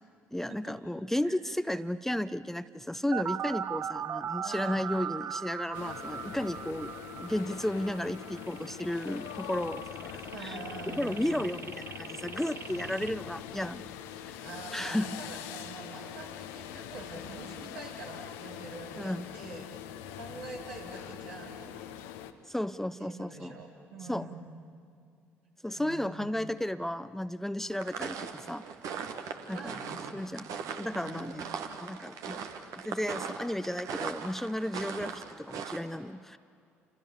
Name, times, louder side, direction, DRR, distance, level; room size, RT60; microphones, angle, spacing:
voice 1, 0.3-6.9 7.2-10.1 10.4-10.6 10.9-13.9 14.2-14.4 14.7-15.2 19.0-19.3 22.5-23.5 24.1-24.3 25.6-28.7 29.5-29.8 30.1-31.5 31.8-32.4 32.8-36.4, left 1 dB, 5° left, 14 dB, 0.7 m, -34 dB
sound 1, 3.1-13.1, right 8 dB, 40° right, 0.9 m, -39 dB
voice 2, 4.4-4.8 10.3-11.4 14.4-19.6 20.1-21.9 23.0-24.5 25.7-26.3 29.5-30.0 30.9-31.4, right 3 dB, 75° right, -2 dB, 4.0 m, -45 dB
sound 2, 5.7-22.3, left 10 dB, 70° left, 1.1 m, -43 dB
sound 3, 27.7-35.8, right 6 dB, 60° right, 1.8 m, -39 dB
29.5 x 27.0 x 7.2 m, 2.4 s
figure-of-eight pair, 50°, 7 cm